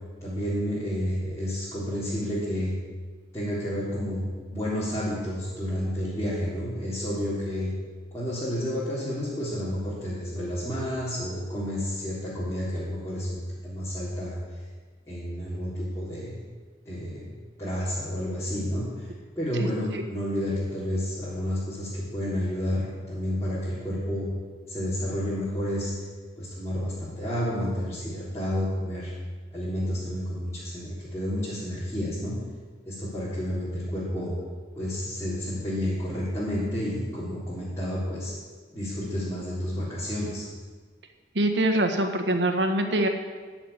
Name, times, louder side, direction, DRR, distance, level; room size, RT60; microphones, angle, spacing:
voice 1, 0.2-2.7 3.3-7.7 8.1-14.4 15.1-16.4 16.9-17.3 17.6-24.3 24.7-26.0 26.4-29.1 29.5-32.3 32.9-34.3 34.7-38.3 38.7-40.4, equal, 15° left, -11 dB, 3.5 m, -30 dB
voice 2, 41.3-43.1, right 1 dB, 85° right, 5 dB, 1.5 m, -24 dB
14.5 x 5.9 x 9.8 m, 1.5 s
head